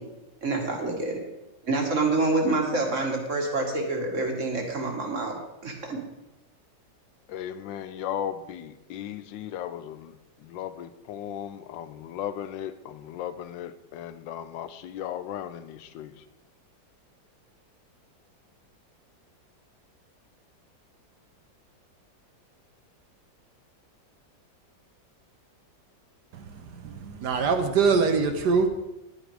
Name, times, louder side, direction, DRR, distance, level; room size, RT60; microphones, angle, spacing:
voice 1, 0.4-1.2 1.6-5.3 5.6-6.0, right 3 dB, 45° right, 2 dB, 1.9 m, -27 dB
voice 2, 7.3-10.1 10.4-16.2, left 10 dB, 80° left, 13 dB, 1.3 m, -36 dB
voice 3, 26.8-28.7, right 5 dB, 65° right, 6 dB, 1.4 m, -23 dB
10.5 x 9.1 x 4.8 m, 0.99 s
omnidirectional pair, 2.0 m